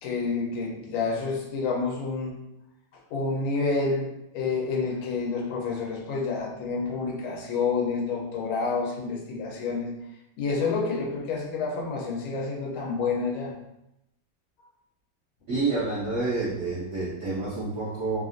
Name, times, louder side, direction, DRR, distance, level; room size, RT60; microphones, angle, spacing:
voice 1, 0.0-2.3 3.1-4.1 4.3-9.9 10.4-13.5, left 4 dB, 90° left, -1 dB, 1.5 m, -28 dB
voice 2, 15.5-18.2, right 3 dB, 70° right, -9 dB, 0.7 m, -28 dB
3.5 x 2.4 x 2.5 m, 0.87 s
omnidirectional pair, 2.2 m